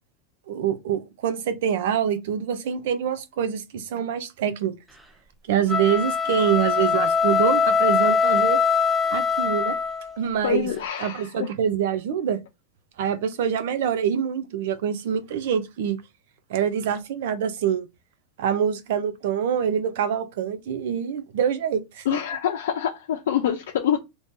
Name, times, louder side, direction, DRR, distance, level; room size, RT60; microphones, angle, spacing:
voice 1, 0.5-4.7 5.5-8.6 9.1-9.8 10.2-10.7 11.0-12.4 13.0-16.0 16.5-17.9 18.4-22.2, right 8 dB, 65° right, 0.7 m, -25 dB
sound 1, 5.6-10.2, left 5 dB, 5° right, 0.4 m, -22 dB
voice 2, 10.4-11.5 22.1-24.0, left 9 dB, 90° left, 0.5 m, -25 dB
3.0 x 2.7 x 3.6 m
supercardioid pair, 170°, 0 cm